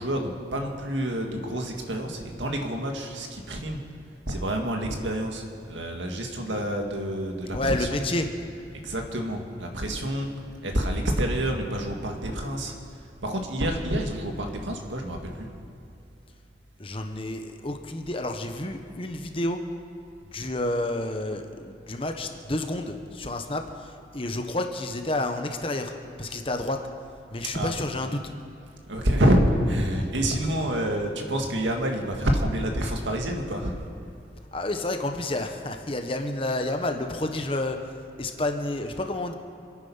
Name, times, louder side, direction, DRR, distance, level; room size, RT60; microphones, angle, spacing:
voice 1, 0.0-3.8 4.3-8.0 8.8-10.3 10.6-12.7 13.2-15.5 27.5-27.7 28.9-33.8, right 1 dB, 90° right, 2 dB, 2.1 m, -27 dB
voice 2, 7.5-8.3 16.8-19.6 20.3-23.6 24.1-25.9 26.2-26.8 27.3-28.2 34.5-37.8 38.2-39.3, left 1 dB, 30° left, 5 dB, 1.1 m, -29 dB
27.0 x 9.5 x 5.7 m, 2.6 s
head